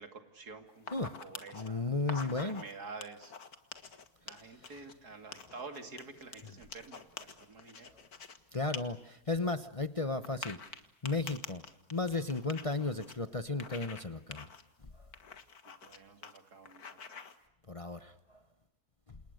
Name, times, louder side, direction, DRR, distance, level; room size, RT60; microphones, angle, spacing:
voice 1, 0.0-3.3 3.9-7.9 15.6-17.2, right 4 dB, 80° right, 7 dB, 3.2 m, -49 dB
sound 1, 0.8-1.7 2.0-2.7 3.0-4.9 5.3-8.4 8.7-8.8 9.2-9.3 10.2-13.1 13.6-14.0 14.3-14.6 15.1-16.0 16.2-16.4 16.6-17.4, left 6 dB, 70° left, 2.2 m, -46 dB
voice 2, 1.5-2.6 7.9-8.0 8.5-10.6 11.0-11.6 11.9-14.5 17.7-18.4 19.1-19.2, left 3 dB, 25° left, 11 dB, 1.0 m, -34 dB
28.5 x 28.5 x 6.6 m, 0.83 s
omnidirectional pair, 1.6 m